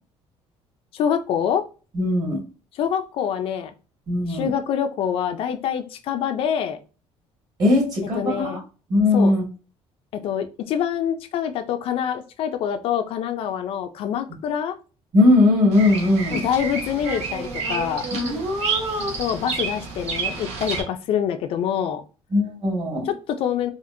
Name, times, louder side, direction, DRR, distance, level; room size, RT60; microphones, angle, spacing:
voice 1, 0.9-1.6 2.8-3.7 4.3-6.8 8.1-8.6 9.1-9.3 10.1-14.8 16.3-18.1 19.0-22.0 23.0-23.7, left 8 dB, 55° left, 7 dB, 0.4 m, -25 dB
voice 2, 1.9-2.4 4.1-4.5 7.6-8.6 8.9-9.4 15.1-16.4 18.1-19.2 22.3-23.1, left 2 dB, 35° right, -1 dB, 1.7 m, -20 dB
Bird vocalization bird call bird song, 15.7-20.8, right 4 dB, 75° right, 1.0 m, -29 dB
4.2 x 2.4 x 2.5 m, 0.34 s
cardioid pair, 160°, 11 cm